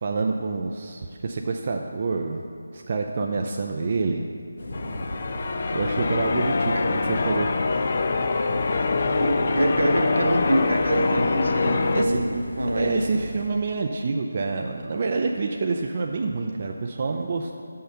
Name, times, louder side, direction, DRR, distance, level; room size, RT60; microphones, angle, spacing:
voice 1, 0.0-2.4 2.7-4.3 5.7-7.5 11.9-12.2 12.8-17.6, right 4 dB, 40° right, 2 dB, 0.4 m, -27 dB
sound 1, 4.6-13.5, left 1 dB, 70° left, 0.9 m, -36 dB
Church bell, 4.7-12.0, left 3 dB, 45° left, 0.4 m, -24 dB
voice 2, 9.2-12.9, right 1 dB, 80° right, 2 dB, 1.1 m, -25 dB
5.7 x 5.4 x 6.8 m, 2.4 s
figure-of-eight pair, 165°, 0 cm